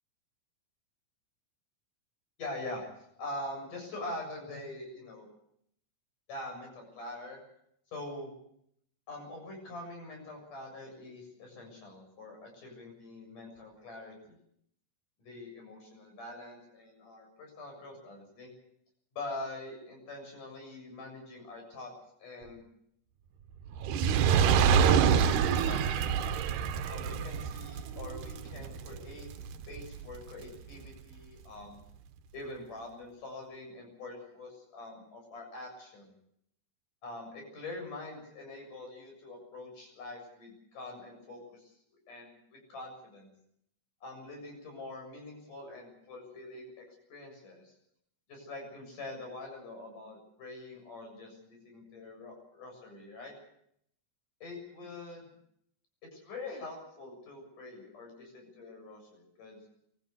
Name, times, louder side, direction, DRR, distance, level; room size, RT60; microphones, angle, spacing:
voice 1, 2.4-2.9 3.2-5.3 6.3-7.4 7.9-8.3 9.1-14.4 15.2-18.5 19.1-21.9 22.2-22.6 24.6-26.3 26.9-29.3 29.7-31.8 32.3-36.1 37.0-41.7 42.1-43.3 44.0-46.8 47.1-47.7 48.3-53.3 54.4-55.2 56.1-59.6, left 2 dB, 70° left, 2 dB, 8.9 m, -44 dB
Fire, 23.7-30.2 30.8-30.9, right 7 dB, 80° right, 2.6 m, -27 dB
24.5 x 15.0 x 8.3 m, 0.72 s
omnidirectional pair, 3.8 m